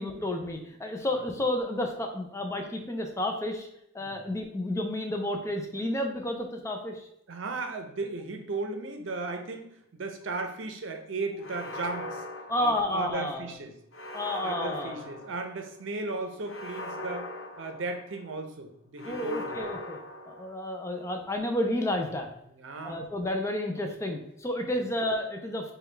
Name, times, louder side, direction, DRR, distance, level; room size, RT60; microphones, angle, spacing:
voice 1, 0.0-3.7 3.9-7.1 12.5-13.5 14.1-15.0 19.0-20.0 20.3-22.3 22.8-25.7, left 1 dB, 15° left, 3 dB, 0.4 m, -31 dB
voice 2, 7.3-12.2 12.6-13.7 14.4-17.3 17.6-19.6 22.5-23.0, right 3 dB, 80° right, 5 dB, 0.6 m, -36 dB
sound 1, 11.4-13.3 13.9-15.7 16.4-18.3 19.0-20.9, left 1 dB, 80° left, 0.6 m, -40 dB
5.0 x 2.3 x 3.2 m, 0.76 s
head